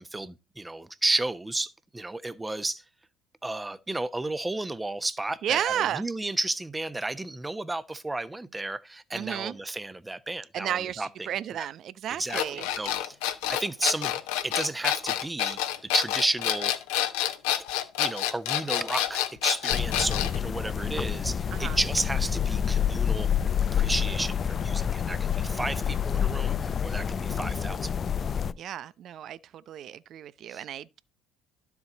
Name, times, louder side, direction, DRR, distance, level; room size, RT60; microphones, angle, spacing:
voice 1, 0.0-2.8 3.4-11.3 11.6-11.7 12.2-13.2 13.5-16.7 18.0-23.3 23.7-27.9 30.5-30.6, right 2 dB, 15° right, 1.1 m, -32 dB
voice 2, 5.4-6.1 9.1-9.6 10.5-12.7 21.5-21.8 28.5-31.0, right 10 dB, 55° right, 0.7 m, -32 dB
sound 1, 12.3-20.4, left 12 dB, 75° left, 1.2 m, -28 dB
sound 2, 19.7-28.5, left 8 dB, 40° left, 0.6 m, -28 dB
12.0 x 7.2 x 4.0 m
hypercardioid pair, 65°, 0 cm